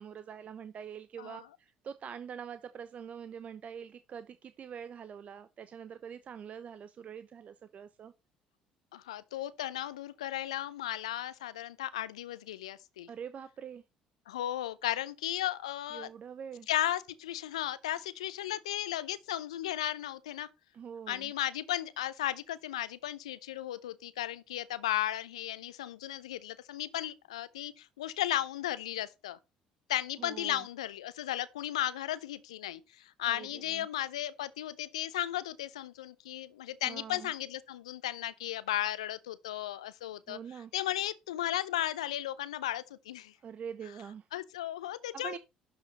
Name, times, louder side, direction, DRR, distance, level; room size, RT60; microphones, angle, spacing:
voice 1, 0.0-8.1 13.1-13.8 15.9-16.7 20.7-21.3 30.2-30.7 33.3-33.9 36.8-37.3 40.3-40.7 43.4-44.3 45.1-45.4, right 7 dB, 45° right, 0.7 m, -44 dB
voice 2, 8.9-13.1 14.3-16.1 16.7-20.5 21.1-29.4 29.9-43.3 44.3-45.4, left 13 dB, 80° left, 0.6 m, -35 dB
11.5 x 5.8 x 4.1 m
hypercardioid pair, 55°, 3 cm